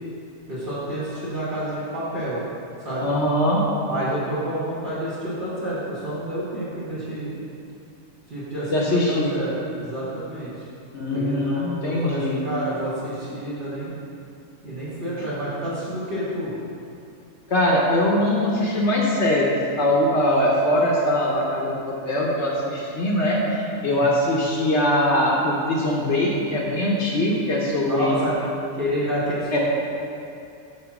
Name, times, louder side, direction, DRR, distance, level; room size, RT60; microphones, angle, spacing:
voice 1, 0.5-2.4 2.8-3.2 3.9-7.3 8.3-10.5 11.1-13.9 14.6-16.5 23.9-24.1 27.9-28.3 28.8-29.6, right 1 dB, 45° right, -11 dB, 1.6 m, -29 dB
voice 2, 3.0-3.6 8.7-9.3 10.9-12.4 17.5-28.1 29.5-29.6, left 1 dB, 60° left, -3 dB, 1.1 m, -22 dB
8.7 x 2.9 x 5.9 m, 2.6 s
omnidirectional pair, 1.4 m